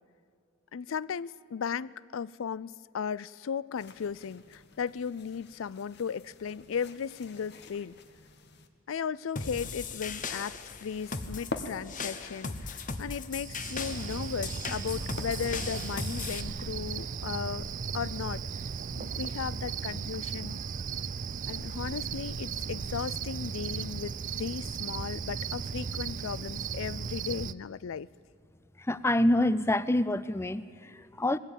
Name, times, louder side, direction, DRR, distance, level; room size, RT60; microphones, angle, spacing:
voice 1, 0.7-8.0 8.9-18.4 18.9-20.6 21.5-28.1, left 6 dB, 90° left, 20 dB, 0.4 m, -36 dB
sound 1, 3.8-8.7 9.7-15.7, left 2 dB, 55° left, 1.4 m, -47 dB
sound 2, 9.4-16.4, left 4 dB, 40° left, 1.1 m, -38 dB
Cricket, 13.3-27.5, right 6 dB, 40° right, 0.4 m, -36 dB
voice 2, 28.8-31.4, left 1 dB, 15° left, 16 dB, 0.5 m, -27 dB
20.5 x 16.0 x 9.0 m, 2.4 s
head